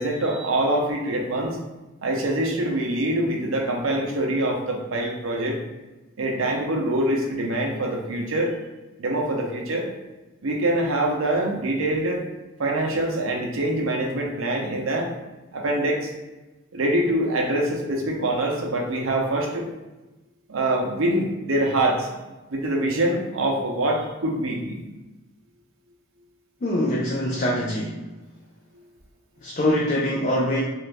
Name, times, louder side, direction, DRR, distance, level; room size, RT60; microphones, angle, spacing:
voice 1, 0.0-1.6 2.0-5.6 6.2-8.6 9.0-9.9 10.4-12.2 12.6-15.1 15.5-16.1 16.7-19.7 20.5-22.1 22.5-24.8, right 1 dB, 75° right, 0 dB, 0.6 m, -24 dB
voice 2, 26.6-28.1 29.4-30.6, left 1 dB, 35° left, -3 dB, 0.4 m, -24 dB
2.8 x 2.5 x 3.4 m, 1.1 s
head